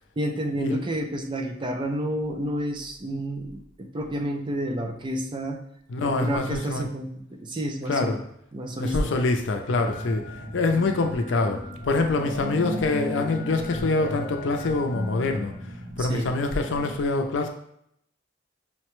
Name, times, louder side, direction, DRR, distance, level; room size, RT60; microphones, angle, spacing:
voice 1, 0.2-5.6 6.0-8.2 8.5-9.1 16.0-16.3, right 1 dB, 25° right, 3 dB, 0.4 m, -30 dB
voice 2, 5.9-6.9 7.9-8.2 8.8-10.2 10.5-15.5 16.0-17.5, left 3 dB, 75° left, 5 dB, 0.5 m, -25 dB
sound 1, 9.7-17.0, equal, 30° left, 0.7 m, -35 dB
5.6 x 2.1 x 3.0 m, 0.72 s
head